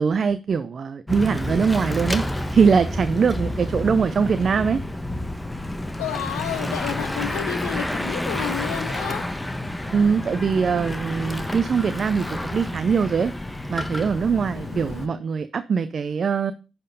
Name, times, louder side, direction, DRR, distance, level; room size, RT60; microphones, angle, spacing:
voice 1, 0.0-2.2 2.5-4.8 9.9-13.3 13.7-16.5, right 6 dB, 55° right, 0.5 m, -22 dB
Bicycle / Mechanisms, 1.1-15.1, left 1 dB, 15° left, 1.2 m, -29 dB
voice 2, 6.0-9.2 14.5-15.2, left 11 dB, 90° left, 0.7 m, -31 dB
10.0 x 4.4 x 5.4 m
hypercardioid pair, 40°, 0 cm